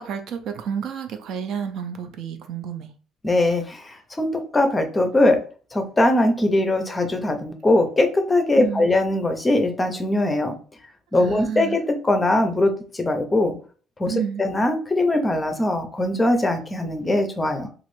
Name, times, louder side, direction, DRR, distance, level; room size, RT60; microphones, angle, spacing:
voice 1, 0.0-2.9 8.6-8.9 11.2-11.8 14.1-14.4, right 7 dB, 65° right, 0.5 m, -30 dB
voice 2, 3.2-5.5 5.7-10.6 11.1-13.6 14.0-17.7, left 1 dB, 15° left, 0.5 m, -21 dB
3.0 x 2.4 x 3.1 m
cardioid pair, 135°, 0 cm